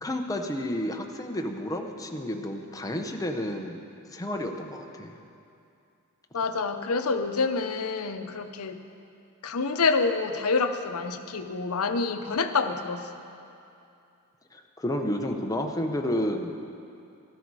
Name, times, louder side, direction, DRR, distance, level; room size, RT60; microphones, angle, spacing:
voice 1, 0.0-3.8 4.1-5.2 14.5-16.5, left 1 dB, 15° left, 3 dB, 0.8 m, -31 dB
voice 2, 6.3-8.8 9.4-13.1, left 4 dB, 80° left, 8 dB, 0.7 m, -27 dB
14.0 x 12.5 x 4.8 m, 2.6 s
head